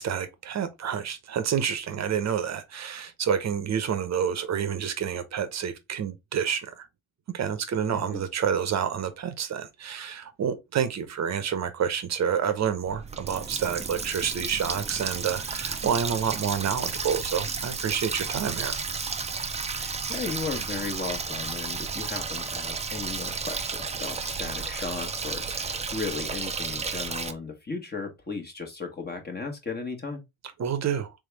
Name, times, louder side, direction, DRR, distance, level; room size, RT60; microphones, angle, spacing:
voice 1, 0.0-6.9 7.3-18.8 30.6-31.1, right 8 dB, 45° right, 0.9 m, -28 dB
voice 2, 7.9-8.2 19.7-30.2, left 4 dB, 25° left, 1.3 m, -36 dB
Water tap faucet, 12.9-27.3, right 5 dB, 15° right, 0.5 m, -32 dB
3.5 x 3.4 x 3.4 m
cardioid pair, 90°, 39 cm